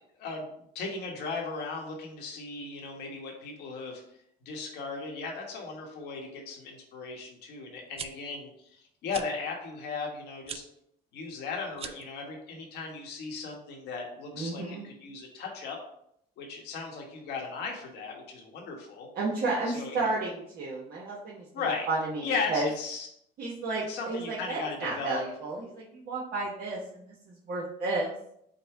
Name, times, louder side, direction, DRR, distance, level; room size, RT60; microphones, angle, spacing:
voice 1, 0.7-4.0 4.4-10.6 11.1-15.8 16.4-19.1 19.7-20.1 21.5-21.9 22.2-23.1 23.9-25.2, left 4 dB, 75° left, 0 dB, 1.2 m, -36 dB
sound 1, 7.8-8.1 9.1-9.3 10.4-10.6 11.7-12.1, right 7 dB, 35° right, 0.4 m, -39 dB
voice 2, 14.3-14.9 19.1-21.4 21.9-22.7 23.4-28.1, right 3 dB, 60° right, -4 dB, 1.0 m, -32 dB
5.2 x 2.2 x 4.5 m, 0.72 s
cardioid pair, 110°, 17 cm